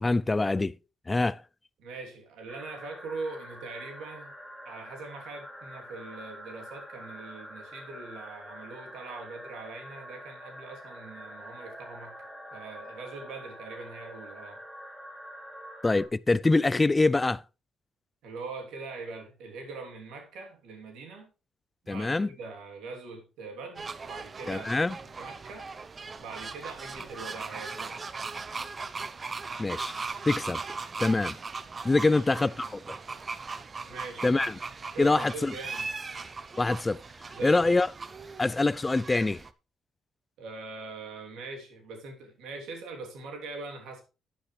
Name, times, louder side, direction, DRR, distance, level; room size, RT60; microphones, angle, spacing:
voice 1, 0.0-0.7 1.1-1.4 15.8-17.4 21.9-22.3 24.5-25.0 29.6-30.0 30.3-30.6 31.0-31.4 31.8-33.0 34.2-34.5 35.0-35.5 36.6-37.0 37.4-37.9 38.4-39.4, left 3 dB, 20° left, 0.4 m, -25 dB
voice 2, 1.8-4.3 4.6-12.2 12.5-14.6 18.2-21.3 21.8-25.7 26.2-28.0 32.0-32.1 33.8-34.3 34.9-35.9 37.3-37.8 40.4-44.0, right 3 dB, 85° right, 3.0 m, -42 dB
sound 1, 2.5-16.1, equal, 10° right, 4.8 m, -46 dB
sound 2, 23.7-39.5, right 4 dB, 35° right, 0.7 m, -39 dB
11.5 x 9.2 x 3.2 m
cardioid pair, 90°, 0 cm